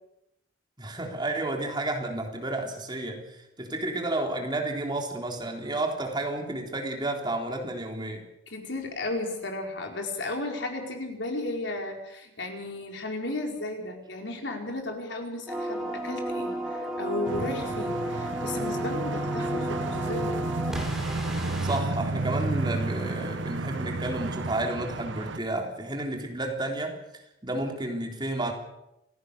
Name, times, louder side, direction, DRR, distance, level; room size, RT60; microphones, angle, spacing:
voice 1, 0.8-8.2 21.6-28.5, right 2 dB, 25° right, 2 dB, 3.7 m, -31 dB
voice 2, 8.5-20.4, left 2 dB, 70° left, 2 dB, 4.7 m, -34 dB
sound 1, 15.5-21.8, right 1 dB, ahead, 4.7 m, -32 dB
sound 2, 17.3-25.4, right 2 dB, 85° right, 1.1 m, -32 dB
27.5 x 17.5 x 6.7 m, 0.87 s
head